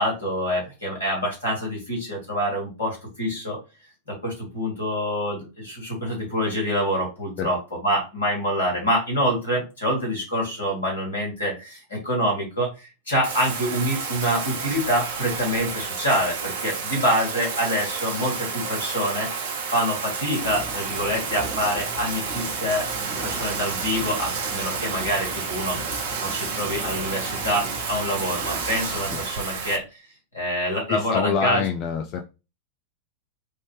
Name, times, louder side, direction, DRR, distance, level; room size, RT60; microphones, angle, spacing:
voice 1, 0.0-3.6 4.1-19.3 19.7-29.8 30.3-31.6, equal, 80° left, -3 dB, 2.1 m, -26 dB
Bathtub (filling or washing), 13.2-29.8, right 5 dB, 55° right, 0.6 m, -30 dB
sound 1, 20.4-29.2, right 1 dB, 5° right, 1.3 m, -38 dB
voice 2, 30.9-32.2, left 6 dB, 40° left, 5 dB, 0.4 m, -25 dB
3.6 x 2.6 x 3.2 m, 0.29 s
figure-of-eight pair, 90°, 0 cm